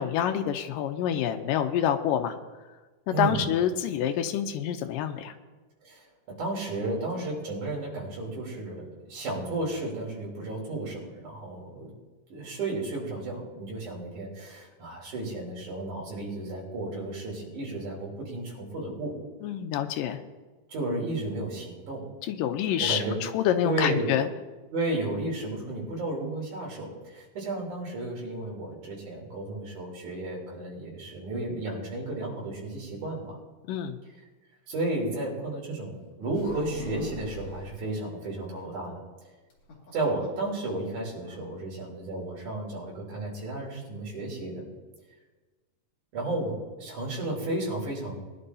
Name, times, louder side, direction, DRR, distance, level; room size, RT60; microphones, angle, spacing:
voice 1, 0.0-2.3 3.1-5.3 19.4-20.2 22.3-24.3 33.7-34.0, left 9 dB, 80° left, 7 dB, 2.2 m, -27 dB
voice 2, 3.1-3.5 5.8-11.9 12.3-19.1 20.7-22.0 22.8-23.2 23.6-24.1 24.7-33.4 34.7-39.0 39.9-44.6 46.1-46.5 46.8-48.2, right 2 dB, 55° right, -4 dB, 4.8 m, -33 dB
sound 1, 36.3-37.8 39.5-40.5 40.7-40.8 41.2-41.5, left 3 dB, 45° left, 3.2 m, -40 dB
21.0 x 11.0 x 2.8 m, 1.3 s
omnidirectional pair, 4.2 m